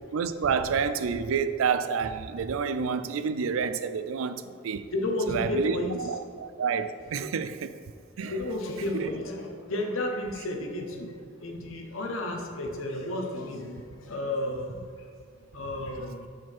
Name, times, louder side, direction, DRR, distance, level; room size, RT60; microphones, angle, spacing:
voice 1, 0.1-4.8 5.3-7.7 8.2-8.3 8.9-9.1, right 6 dB, 85° right, 0.4 m, -29 dB
voice 2, 4.9-5.9 6.3-6.4 8.2-15.1 15.5-16.2, left 1 dB, 85° left, 0.9 m, -32 dB
5.8 x 4.9 x 4.5 m
head